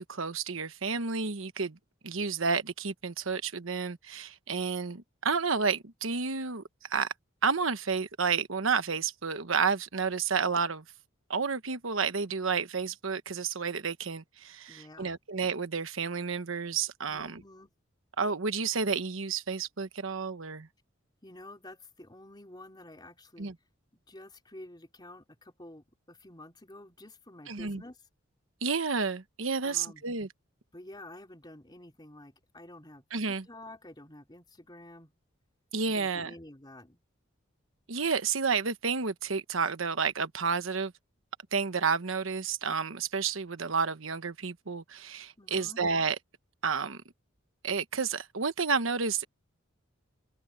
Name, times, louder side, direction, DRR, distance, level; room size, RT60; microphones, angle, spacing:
voice 1, 0.0-1.8 2.0-6.6 6.9-7.1 7.4-10.8 11.3-17.4 18.2-20.7 23.4-23.5 27.5-27.8 28.6-30.3 33.1-33.4 35.7-36.3 37.9-40.9 41.5-46.2 46.6-47.0 47.6-49.2, right 5 dB, 85° right, 1.2 m, -30 dB
voice 2, 14.7-15.1 17.1-17.7 21.2-23.5 23.9-28.0 29.6-30.0 30.7-33.0 33.5-35.1 35.8-37.0 45.4-45.8, left 1 dB, 20° left, 4.0 m, -50 dB
head